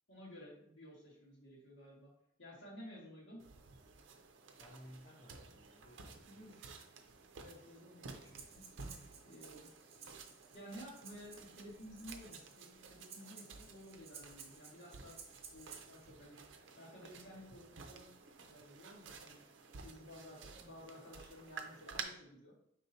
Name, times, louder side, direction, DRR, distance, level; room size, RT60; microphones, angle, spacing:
voice 1, 0.1-2.1 2.4-3.5 6.2-6.5 7.4-8.6 9.2-9.7 10.5-15.1 15.5-18.1 18.5-19.4 19.8-22.5, equal, 80° left, -5 dB, 1.9 m, -54 dB
sound 1, 3.4-22.0, right 5 dB, 75° right, 0.5 m, -53 dB
voice 2, 4.6-6.8, equal, 40° left, -3 dB, 0.7 m, -58 dB
Breathing, 8.2-16.0, right 6 dB, 30° right, 0.6 m, -56 dB
5.4 x 3.5 x 2.7 m, 0.68 s
head